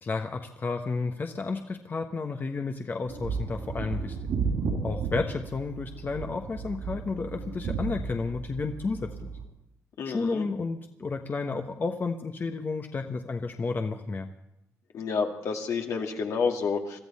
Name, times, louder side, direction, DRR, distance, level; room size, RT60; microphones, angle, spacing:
voice 1, 0.0-4.2 4.8-9.3 10.0-14.3, left 4 dB, 40° left, 5 dB, 1.2 m, -32 dB
sound 1, 3.1-9.4, right 5 dB, 80° right, 4.0 m, -34 dB
voice 2, 10.0-10.4 14.9-17.0, left 5 dB, 70° left, 2 dB, 2.2 m, -29 dB
22.5 x 13.5 x 4.3 m, 0.82 s
cardioid pair, 70°, 5 cm